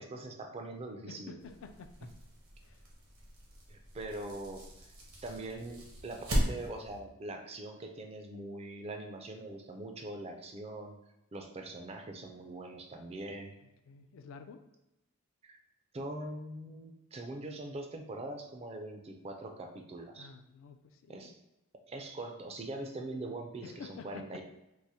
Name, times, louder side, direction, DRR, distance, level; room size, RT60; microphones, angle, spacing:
voice 1, 0.0-1.4 3.7-4.7 5.2-11.0 11.3-13.6 15.5-15.6 15.9-20.3 21.1-21.4 21.9-24.4, right 2 dB, 30° right, 4 dB, 0.4 m, -42 dB
voice 2, 1.1-2.1 2.6-2.9 13.9-14.6 20.2-21.3 23.6-24.4, left 5 dB, 60° left, 8 dB, 0.3 m, -50 dB
sound 1, 1.4-7.0, equal, 75° right, 0.9 m, -38 dB
4.6 x 2.0 x 2.7 m, 0.94 s
head